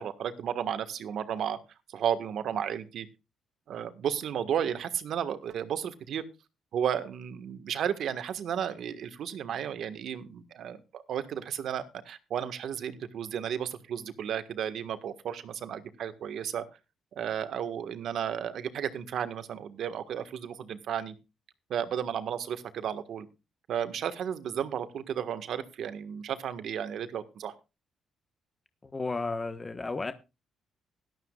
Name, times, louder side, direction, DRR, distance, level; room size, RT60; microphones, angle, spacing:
voice 1, 0.0-1.6 1.9-3.1 3.7-6.2 6.7-16.6 17.1-21.1 21.7-23.3 23.7-27.5, right 9 dB, 70° right, 10 dB, 1.5 m, -33 dB
voice 2, 28.8-30.1, left 3 dB, 25° left, 9 dB, 1.2 m, -33 dB
17.5 x 12.5 x 2.4 m, 0.28 s
cardioid pair, 90°, 0 cm